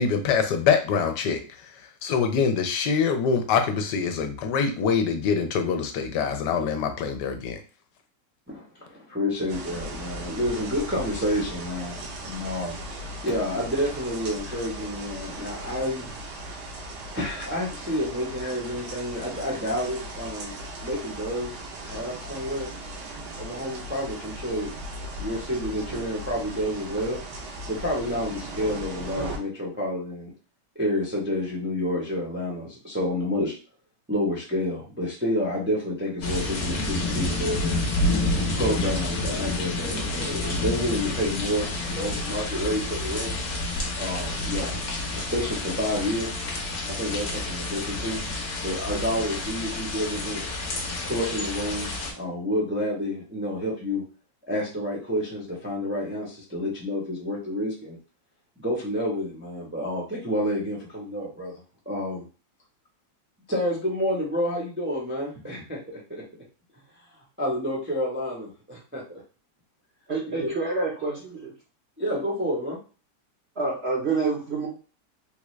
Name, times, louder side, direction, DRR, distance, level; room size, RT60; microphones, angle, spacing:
voice 1, 0.0-1.4 2.0-7.6, left 6 dB, 80° left, 7 dB, 1.2 m, -24 dB
voice 2, 8.5-12.8 13.2-16.1 17.1-20.5 20.8-22.7 23.4-24.7 25.2-27.2 27.7-30.3 30.7-33.5 34.1-37.9 38.5-43.4 43.9-44.7 45.2-46.3 46.9-48.2 48.6-50.5 51.0-54.0 54.5-58.0 58.6-61.5 61.9-62.3 63.5-66.2 67.4-69.2 70.3-70.5 72.0-72.8, left 1 dB, 15° right, -4 dB, 0.5 m, -29 dB
sound 1, 9.5-29.4, right 1 dB, 75° right, 1.3 m, -38 dB
sound 2, 36.2-52.1, left 2 dB, 55° left, 1.0 m, -29 dB
voice 3, 70.1-71.5 73.6-74.7, right 4 dB, 50° right, -3 dB, 0.8 m, -27 dB
3.6 x 2.3 x 3.1 m, 0.35 s
omnidirectional pair, 1.8 m